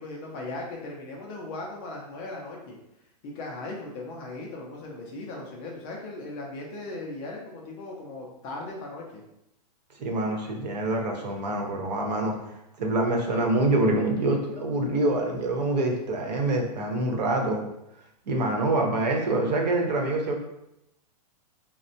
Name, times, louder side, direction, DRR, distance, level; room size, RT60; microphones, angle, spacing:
voice 1, 0.0-2.8 3.2-9.2, left 2 dB, 20° left, -1 dB, 0.3 m, -38 dB
voice 2, 10.0-12.3 12.8-17.6 18.3-20.4, right 2 dB, 75° right, 2 dB, 0.8 m, -25 dB
4.3 x 2.1 x 2.6 m, 0.86 s
supercardioid pair, 165°, 21 cm